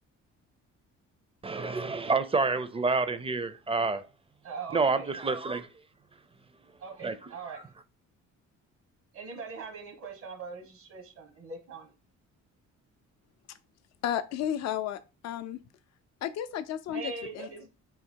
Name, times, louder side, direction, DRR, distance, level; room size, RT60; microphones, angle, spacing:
voice 1, 1.4-4.1 4.7-5.7 7.0-7.3, right 4 dB, 20° right, 0.5 m, -28 dB
voice 2, 4.4-5.1 6.8-7.6 9.1-11.9 16.9-17.7, right 4 dB, 70° right, 1.2 m, -41 dB
voice 3, 14.0-15.6 16.2-17.5, left 10 dB, 60° left, 0.4 m, -33 dB
3.7 x 2.7 x 4.4 m
cardioid pair, 90°, 30 cm